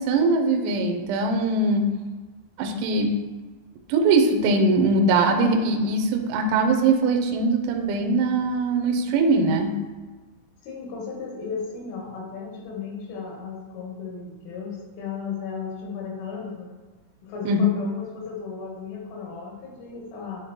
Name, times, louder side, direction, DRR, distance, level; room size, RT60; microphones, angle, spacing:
voice 1, 0.0-1.8 2.6-3.2 3.9-9.8 17.5-17.6, right 3 dB, 80° right, 4 dB, 2.9 m, -21 dB
voice 2, 10.6-16.8 17.2-20.4, left 5 dB, 80° left, -2 dB, 3.5 m, -35 dB
9.9 x 3.7 x 2.9 m, 1.3 s
omnidirectional pair, 5.9 m